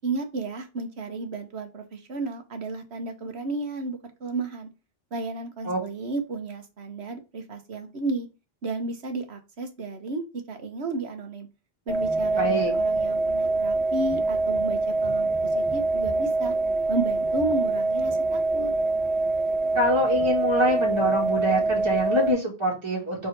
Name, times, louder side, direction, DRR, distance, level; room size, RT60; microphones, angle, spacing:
voice 1, 0.0-4.7 5.1-8.3 8.6-11.5 11.9-15.3 15.5-16.5 16.9-18.7, right 3 dB, 85° right, 6 dB, 1.5 m, -33 dB
sound 1, 11.9-22.3, right 2 dB, ahead, 1.0 m, -25 dB
voice 2, 12.4-12.7 19.7-23.3, equal, 25° right, -4 dB, 2.3 m, -25 dB
4.6 x 4.3 x 5.2 m, 0.29 s
omnidirectional pair, 1.1 m